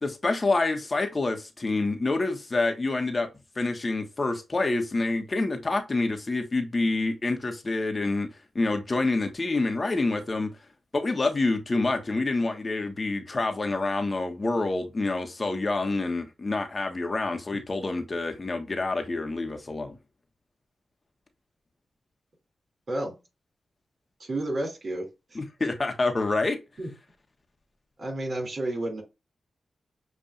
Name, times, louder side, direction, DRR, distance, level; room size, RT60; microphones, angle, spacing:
voice 1, 0.0-3.3 3.6-8.3 8.5-10.5 10.9-20.0 25.3-26.6, left 3 dB, 40° left, 1.1 m, -27 dB
voice 2, 24.2-25.1 25.6-25.7 26.8-26.9 28.0-29.0, right 1 dB, 55° right, 2.6 m, -31 dB
7.0 x 2.7 x 2.5 m
cardioid pair, 45°, 0 cm